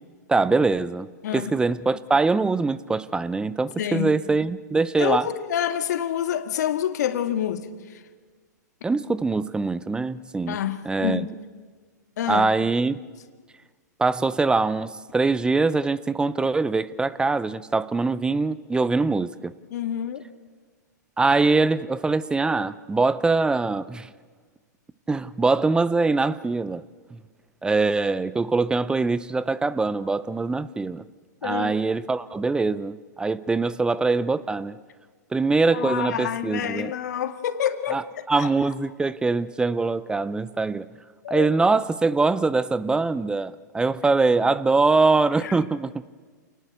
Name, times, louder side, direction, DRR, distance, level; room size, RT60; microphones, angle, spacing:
voice 1, 0.3-5.2 8.8-10.6 10.9-11.2 12.3-13.0 14.0-19.5 21.2-24.1 25.1-26.8 27.1-27.2 27.6-31.0 31.4-34.8 35.3-36.9 37.9-38.0 38.3-40.8 41.3-45.9, right 3 dB, 10° right, 0.6 m, -23 dB
voice 2, 1.2-1.5 3.8-4.1 5.0-8.0 10.5-11.3 12.2-12.6 19.7-20.3 31.4-31.7 35.7-38.7 41.2-41.5 45.4-45.6, left 10 dB, 65° left, 1.9 m, -28 dB
28.0 x 19.5 x 8.0 m
hypercardioid pair, 120°, 10 cm